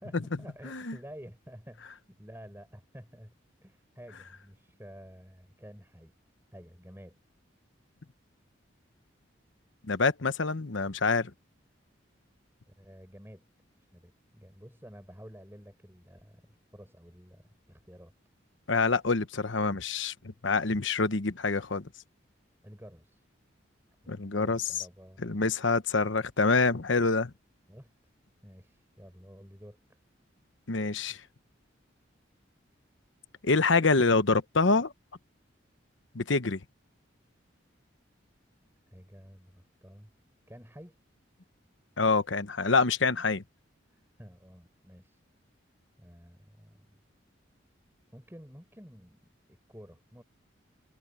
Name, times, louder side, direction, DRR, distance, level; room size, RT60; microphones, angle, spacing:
voice 1, 0.0-3.3 3.6-6.1 6.5-7.2 12.7-13.5 13.9-18.1 22.6-23.2 23.9-25.5 27.7-27.9 28.4-30.0 38.9-40.1 40.5-41.0 43.8-45.2 46.0-47.0 48.1-49.3 49.7-50.2, equal, 10° right, 6.5 m, -51 dB
voice 2, 0.6-1.0 9.8-11.3 18.7-21.9 24.1-24.6 25.2-27.3 30.7-31.2 33.4-34.9 36.1-36.6 42.0-43.4, left 3 dB, 75° left, 1.1 m, -26 dB
head